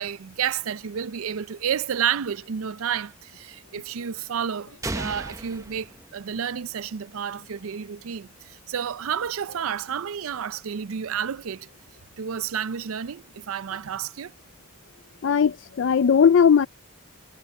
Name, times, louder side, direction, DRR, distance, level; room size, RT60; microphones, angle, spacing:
voice 1, 0.0-11.7 12.2-14.3, right 8 dB, 90° right, 0.5 m, -30 dB
sound 1, 4.8-6.7, right 2 dB, 15° right, 0.8 m, -35 dB
voice 2, 15.2-16.7, left 7 dB, 65° left, 0.4 m, -18 dB
head